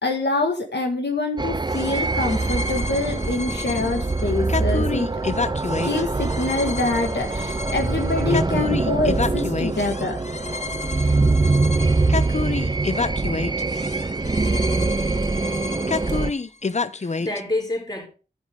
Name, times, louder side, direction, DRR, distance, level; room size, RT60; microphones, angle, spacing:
voice 1, 0.0-5.1 5.8-10.2, left 2 dB, 90° left, 1.5 m, -25 dB
sound 1, 1.4-16.3, right 3 dB, 25° right, 0.4 m, -24 dB
sound 2, 1.7-17.4, left 4 dB, 40° left, 0.6 m, -30 dB
voice 2, 16.9-18.1, left 2 dB, 25° left, 3.8 m, -29 dB
12.5 x 7.3 x 3.5 m
wide cardioid pair, 55°, 17 cm